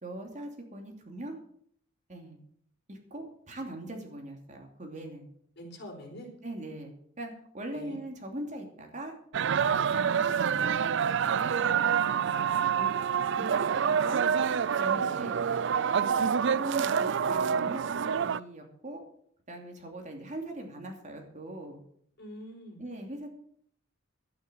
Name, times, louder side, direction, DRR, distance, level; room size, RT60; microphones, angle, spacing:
voice 1, 0.0-1.4 2.1-2.4 2.9-5.3 6.4-6.9 7.2-9.2 9.5-10.9 11.6-12.2 12.7-13.0 13.3-14.2 14.8-15.5 16.1-19.0 19.5-21.8 22.8-23.3, right 1 dB, 40° right, 3 dB, 2.8 m, -41 dB
voice 2, 5.6-6.3 7.7-8.0 14.8-15.3 22.2-22.8, equal, 60° left, 2 dB, 4.1 m, -45 dB
sound 1, 9.3-18.4, right 7 dB, 65° right, 0.4 m, -27 dB
11.5 x 9.6 x 6.9 m, 0.63 s
head